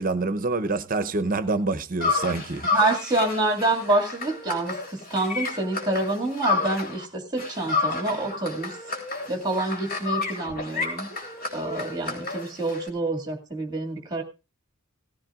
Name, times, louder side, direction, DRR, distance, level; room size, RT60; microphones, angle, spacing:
voice 1, 0.0-2.8, right 3 dB, 40° right, 0.8 m, -26 dB
sound 1, 2.0-7.1 7.4-12.9, left 4 dB, 45° left, 3.3 m, -30 dB
voice 2, 2.7-8.7 9.3-11.1 11.5-14.2, right 2 dB, 20° right, 2.1 m, -27 dB
17.5 x 15.0 x 2.4 m
head